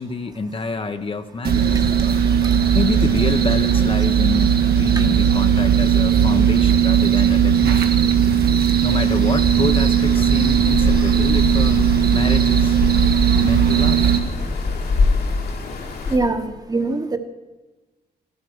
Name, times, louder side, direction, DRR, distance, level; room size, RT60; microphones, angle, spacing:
voice 1, 0.0-1.8 2.7-7.9 8.8-11.8 12.1-12.8 13.4-14.1, left 3 dB, 35° left, 7 dB, 0.9 m, -27 dB
sound 1, 1.4-14.2, right 8 dB, 75° right, 1.7 m, -17 dB
sound 2, 5.0-14.5, right 3 dB, 60° right, 1.6 m, -31 dB
sound 3, 8.9-16.2, left 3 dB, 75° left, 2.6 m, -25 dB
voice 2, 16.1-17.2, right 3 dB, 25° right, 7 dB, 1.2 m, -22 dB
16.5 x 12.0 x 6.3 m, 1.2 s
wide cardioid pair, 115°, 16 cm